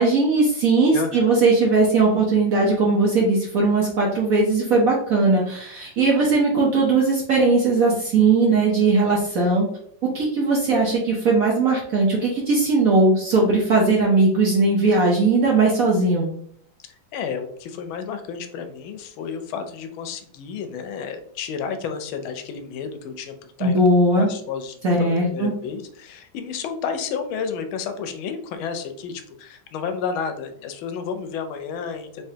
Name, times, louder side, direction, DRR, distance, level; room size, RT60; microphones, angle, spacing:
voice 1, 0.0-9.6 10.0-16.3 23.6-24.3 24.8-25.5, right 3 dB, 60° right, -2 dB, 0.9 m, -19 dB
voice 2, 0.9-1.3 16.8-32.2, left 6 dB, 85° left, 7 dB, 1.4 m, -31 dB
3.5 x 3.3 x 2.7 m, 0.63 s
omnidirectional pair, 2.2 m